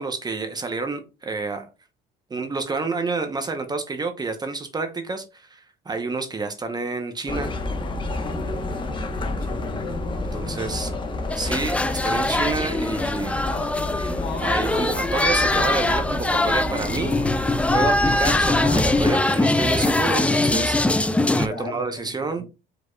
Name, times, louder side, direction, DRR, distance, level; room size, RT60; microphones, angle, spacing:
voice 1, 0.0-1.7 2.3-7.5 9.4-9.5 10.3-10.9 11.4-13.4 14.4-20.8 21.4-22.4, right 4 dB, 25° right, 6 dB, 0.8 m, -29 dB
sound 1, 7.3-19.1, left 2 dB, 30° left, 1.0 m, -29 dB
voice 2, 9.2-10.8 21.5-22.4, left 2 dB, 55° left, 0 dB, 2.2 m, -39 dB
sound 2, 11.3-21.5, left 2 dB, 5° left, 0.3 m, -22 dB
5.0 x 4.0 x 2.3 m, 0.28 s
cardioid pair, 110°, 17 cm